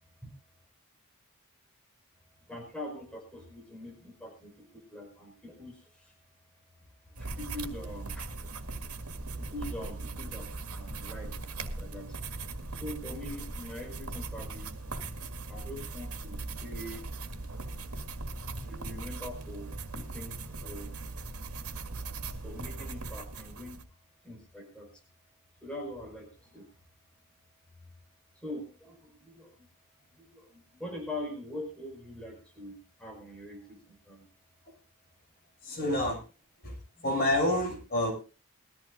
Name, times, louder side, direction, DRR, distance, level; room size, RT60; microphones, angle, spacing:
voice 1, 2.5-6.1 7.1-8.3 9.4-12.1 12.7-14.8 15.5-17.0 18.5-19.7 19.9-20.4 20.6-20.9 22.4-23.8 24.2-25.0 25.6-26.7 28.4-29.7 30.1-34.3, left 1 dB, 5° left, 0 dB, 5.4 m, -43 dB
sound 1, 7.2-23.8, right 3 dB, 85° right, 2.0 m, -39 dB
voice 2, 35.6-36.2 36.6-36.8 37.0-38.1, left 1 dB, 45° left, 2 dB, 6.6 m, -28 dB
21.5 x 14.5 x 2.6 m, 0.33 s
head